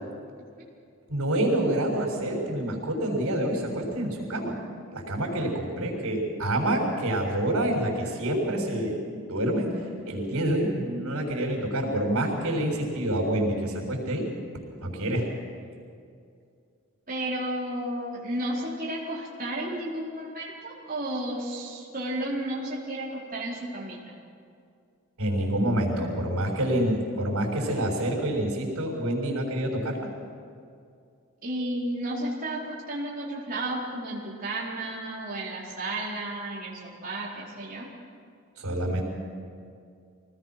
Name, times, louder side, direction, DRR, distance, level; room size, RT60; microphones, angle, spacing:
voice 1, 1.1-4.5 4.9-9.7 10.0-14.3 14.8-15.3 25.2-30.0 38.6-39.0, right 1 dB, 85° right, -5 dB, 6.1 m, -27 dB
voice 2, 17.1-24.1 31.4-37.9, right 1 dB, 40° right, -5 dB, 4.5 m, -33 dB
25.5 x 19.0 x 6.1 m, 2.4 s
head